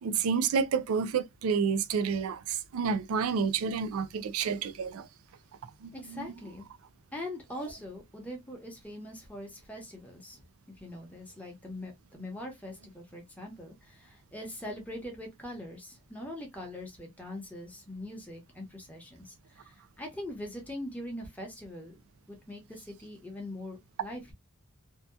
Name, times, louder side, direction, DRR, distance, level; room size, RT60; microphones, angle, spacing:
voice 1, 0.0-5.1 5.8-6.3, right 6 dB, 85° right, 0.4 m, -29 dB
voice 2, 5.9-6.6 7.1-10.4 10.8-22.0 22.3-24.3, left 1 dB, 5° left, 0.9 m, -42 dB
2.7 x 2.2 x 2.2 m
head